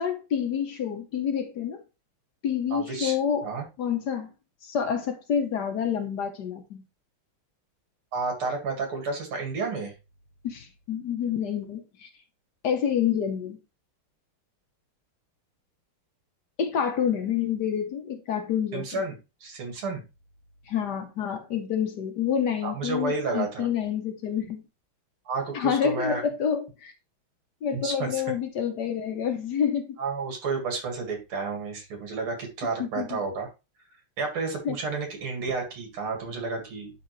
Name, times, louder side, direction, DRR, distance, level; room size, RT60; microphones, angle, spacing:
voice 1, 0.0-1.8 2.4-3.5 3.8-4.3 4.6-6.8 10.4-12.1 12.6-13.6 16.6-19.0 20.7-24.6 25.5-26.9 27.6-30.0 32.8-33.2 34.6-34.8, left 8 dB, 60° left, 1.3 m, -28 dB
voice 2, 2.7-3.2 3.4-3.6 8.1-9.9 18.7-19.2 19.4-20.0 22.6-23.7 25.3-26.2 27.7-28.2 30.0-33.5 34.2-36.9, right 4 dB, 90° right, 2.9 m, -31 dB
11.0 x 3.7 x 3.1 m
omnidirectional pair, 2.3 m